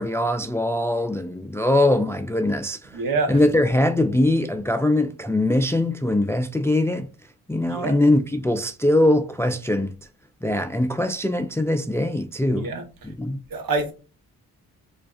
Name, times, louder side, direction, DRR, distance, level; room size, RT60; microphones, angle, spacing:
voice 1, 0.0-7.1 7.5-9.9 10.4-12.7 13.0-13.4, left 1 dB, 5° left, 0.3 m, -22 dB
voice 2, 2.9-3.3 7.7-7.9 12.5-12.8 13.5-13.9, right 3 dB, 65° right, 1.0 m, -25 dB
4.5 x 2.6 x 2.4 m
supercardioid pair, 45°, 38 cm